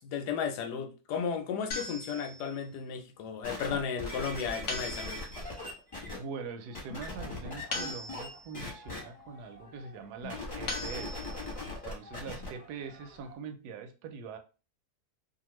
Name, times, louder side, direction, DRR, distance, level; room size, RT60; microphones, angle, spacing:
voice 1, 0.0-5.2, left 6 dB, 85° left, 1.2 m, -34 dB
sound 1, 1.7-2.6 4.7-5.5 7.7-8.6 10.7-11.6, left 2 dB, 55° left, 1.0 m, -39 dB
sound 2, 3.4-6.2 6.7-8.3 8.5-9.0 10.2-12.5 13.2-13.3, left 2 dB, 25° left, 1.0 m, -39 dB
voice 2, 6.2-11.3 11.8-14.4, right 5 dB, 75° right, 1.1 m, -43 dB
sound 3, 6.7-13.4, left 1 dB, 15° right, 0.8 m, -55 dB
2.7 x 2.4 x 3.0 m
omnidirectional pair, 1.8 m